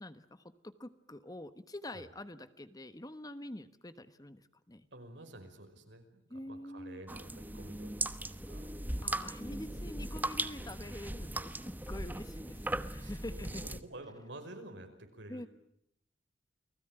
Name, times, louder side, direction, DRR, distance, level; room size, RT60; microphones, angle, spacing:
voice 1, 0.0-4.9 6.3-7.0 9.0-13.8 15.3-15.5, left 1 dB, 20° left, 12 dB, 1.2 m, -46 dB
voice 2, 4.9-8.7 13.0-15.5, right 1 dB, 85° right, 5 dB, 5.3 m, -50 dB
sound 1, 7.1-13.8, right 1 dB, 10° right, 1.0 m, -38 dB
29.5 x 19.5 x 9.0 m, 0.74 s
head